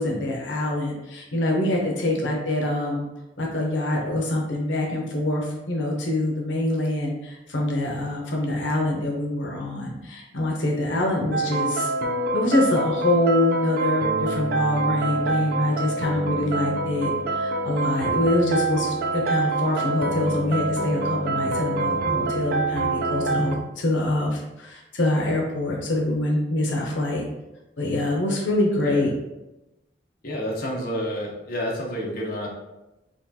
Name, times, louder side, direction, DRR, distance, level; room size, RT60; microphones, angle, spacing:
voice 1, 0.0-3.1 3.4-11.9 12.3-27.2 27.8-29.1, left 1 dB, 85° left, -1 dB, 0.8 m, -25 dB
sound 1, 11.3-23.6, right 3 dB, 55° right, 0.4 m, -26 dB
voice 2, 30.2-32.5, equal, 55° left, -2 dB, 0.8 m, -29 dB
6.0 x 2.3 x 2.7 m, 0.97 s
head